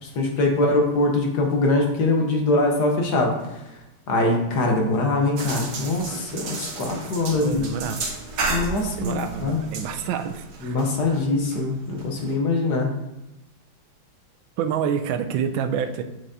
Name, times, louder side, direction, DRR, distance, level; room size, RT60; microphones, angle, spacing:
voice 1, 0.0-3.3 4.1-7.6 8.5-9.6 10.6-12.9, left 2 dB, 60° left, 1 dB, 1.5 m, -23 dB
sound 1, 5.4-12.3, right 3 dB, 60° right, 1.3 m, -33 dB
voice 2, 7.4-8.0 9.0-10.8 14.6-16.0, right 7 dB, 80° right, 7 dB, 1.3 m, -27 dB
7.1 x 5.9 x 2.7 m, 0.95 s
omnidirectional pair, 2.2 m